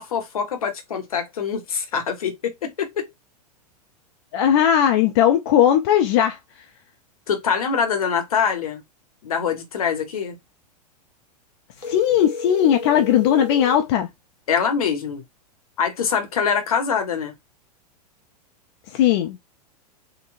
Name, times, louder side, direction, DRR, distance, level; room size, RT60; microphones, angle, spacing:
voice 1, 0.0-3.1 7.3-8.8 9.2-10.4 14.5-15.2 15.8-17.3, left 6 dB, 65° left, 0.9 m, -24 dB
voice 2, 4.3-6.4 11.8-14.1 18.9-19.4, left 10 dB, 40° left, 0.5 m, -18 dB
sound 1, 11.8-13.9, left 4 dB, 90° left, 0.7 m, -32 dB
3.8 x 2.1 x 2.5 m
figure-of-eight pair, 95°, 20 cm